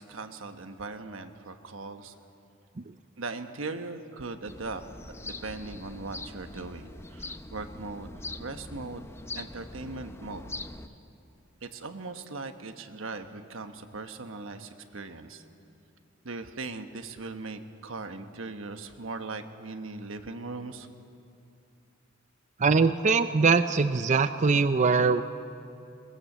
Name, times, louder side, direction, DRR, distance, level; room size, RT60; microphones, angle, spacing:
voice 1, 0.0-2.2 3.2-4.8 5.2-9.1 9.3-10.6 11.6-15.4 16.2-20.9, right 3 dB, 85° right, 7 dB, 1.2 m, -39 dB
sound 1, 4.5-10.9, left 2 dB, 15° left, 0.6 m, -42 dB
voice 2, 22.6-25.2, right 4 dB, 40° right, 10 dB, 0.5 m, -22 dB
21.0 x 20.0 x 7.4 m, 2.6 s
head